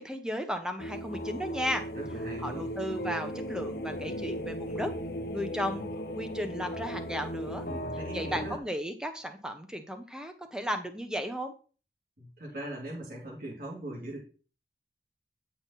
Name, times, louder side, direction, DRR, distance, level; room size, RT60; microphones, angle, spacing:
voice 1, 0.0-1.9 2.4-5.0 5.3-5.9 6.1-7.7 8.1-11.5, equal, 5° right, 6 dB, 1.0 m, -35 dB
sound 1, 0.8-8.6, equal, 55° left, 0.9 m, -36 dB
voice 2, 1.9-2.7 7.7-8.6 12.2-14.2, right 1 dB, 50° right, -3 dB, 2.6 m, -40 dB
9.7 x 5.7 x 4.1 m, 0.37 s
head